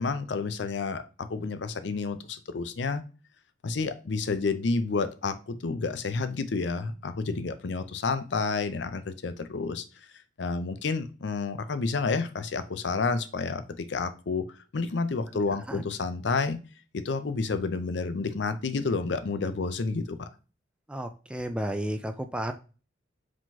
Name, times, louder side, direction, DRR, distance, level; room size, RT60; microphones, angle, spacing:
voice 1, 0.0-3.0 3.6-9.8 10.4-16.6 16.9-20.3, left 4 dB, 70° left, 11 dB, 0.5 m, -30 dB
voice 2, 15.5-15.8 20.9-22.5, right 1 dB, 5° right, 7 dB, 0.4 m, -33 dB
4.9 x 3.8 x 2.7 m, 0.34 s
head